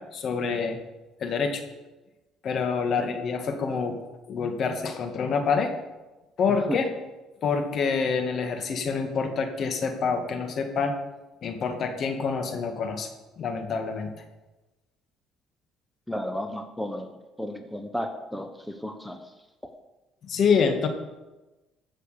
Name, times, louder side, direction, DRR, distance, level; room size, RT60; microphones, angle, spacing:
voice 1, 0.1-0.8 1.2-1.6 2.4-4.0 4.3-5.7 6.4-6.9 7.4-10.9 11.4-13.1 13.4-14.2 20.3-20.9, left 5 dB, 55° left, 6 dB, 2.0 m, -26 dB
voice 2, 16.1-17.1 17.4-19.2, equal, 5° left, 6 dB, 1.1 m, -33 dB
15.0 x 6.7 x 6.6 m, 1.1 s
supercardioid pair, 90°, 0 cm